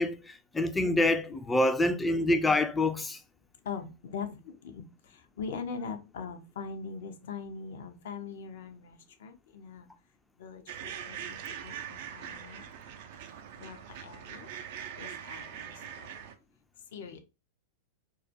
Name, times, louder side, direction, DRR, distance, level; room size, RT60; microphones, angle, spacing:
voice 1, 0.0-3.2, left 2 dB, 10° left, 0.4 m, -26 dB
voice 2, 3.7-4.4 4.6-4.8 5.4-9.9 10.4-11.4 11.6-12.7 13.6-14.5 15.0-15.7 16.9-17.2, left 5 dB, 65° left, 0.5 m, -41 dB
Hundreds of ducks, 10.7-16.3, right 8 dB, 60° right, 0.4 m, -42 dB
2.2 x 2.1 x 2.6 m
hypercardioid pair, 100°, 0 cm